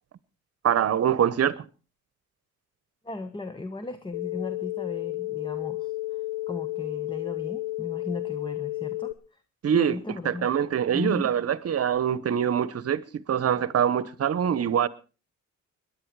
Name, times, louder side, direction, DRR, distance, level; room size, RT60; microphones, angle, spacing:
voice 1, 0.6-1.6 9.6-10.0 10.2-14.9, right 8 dB, 55° right, 1.1 m, -24 dB
voice 2, 3.0-9.4 9.7-10.5 10.9-11.3, left 3 dB, 15° left, 1.2 m, -37 dB
sound 1, 4.1-9.1, left 18 dB, 75° left, 1.3 m, -32 dB
22.0 x 11.0 x 4.8 m
cardioid pair, 90°, 30 cm